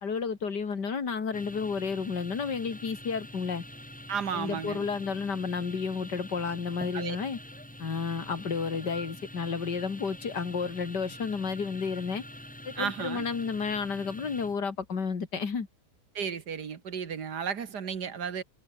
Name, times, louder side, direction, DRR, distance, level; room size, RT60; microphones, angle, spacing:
voice 1, 0.0-3.6 4.3-7.4 7.8-12.2 12.6-15.7, left 5 dB, 75° left, 3.0 m, -31 dB
sound 1, 1.3-14.6, left 1 dB, 5° left, 2.2 m, -46 dB
voice 2, 4.1-4.9 6.9-7.2 12.8-13.3 16.2-18.4, right 7 dB, 70° right, 2.2 m, -33 dB
omnidirectional pair, 1.9 m